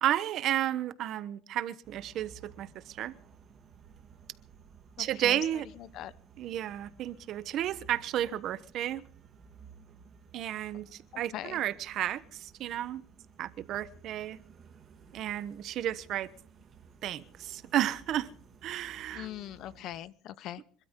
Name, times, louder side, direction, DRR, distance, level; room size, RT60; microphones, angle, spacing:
voice 1, 0.0-3.1 5.0-5.6 6.4-9.0 10.3-13.0 13.4-14.4 15.1-16.3 17.0-18.3 18.6-19.3, right 12 dB, 50° right, 1.0 m, -32 dB
sound 1, 1.8-20.0, right 5 dB, 35° right, 2.1 m, -56 dB
voice 2, 5.0-6.1 11.1-11.6 19.1-20.8, left 12 dB, 55° left, 0.8 m, -42 dB
26.5 x 12.5 x 3.8 m
cardioid pair, 140°, 0 cm